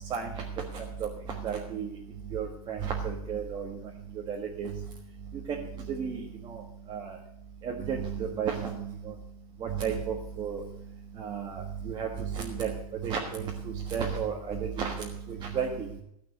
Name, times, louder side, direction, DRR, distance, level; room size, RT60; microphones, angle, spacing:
voice 1, 0.1-0.4 0.7-1.1 1.4-2.0 2.3-3.8 4.3-4.7 5.5-5.6 5.9-6.6 6.9-7.2 7.6-9.1 9.6-10.6 11.2-12.7 13.0-15.9, right 7 dB, 20° right, -1 dB, 1.5 m, -33 dB
15.0 x 5.9 x 8.3 m, 0.76 s
supercardioid pair, 150°, 20 cm